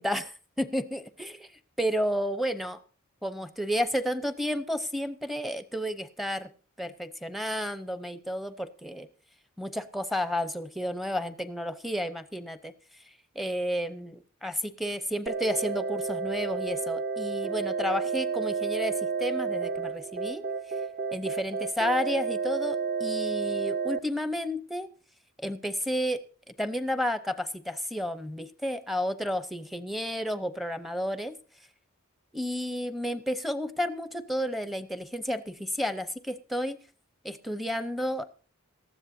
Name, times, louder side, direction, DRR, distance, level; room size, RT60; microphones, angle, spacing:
voice 1, 0.0-1.0 1.8-2.8 3.2-6.5 6.8-9.1 9.6-12.7 13.3-20.4 21.1-24.9 25.4-26.2 26.6-31.4 32.3-36.8 37.2-38.3, equal, ahead, 11 dB, 0.7 m, -31 dB
sound 1, 15.3-24.0, right 5 dB, 40° right, 0.9 m, -31 dB
18.5 x 13.5 x 2.7 m, 0.38 s
head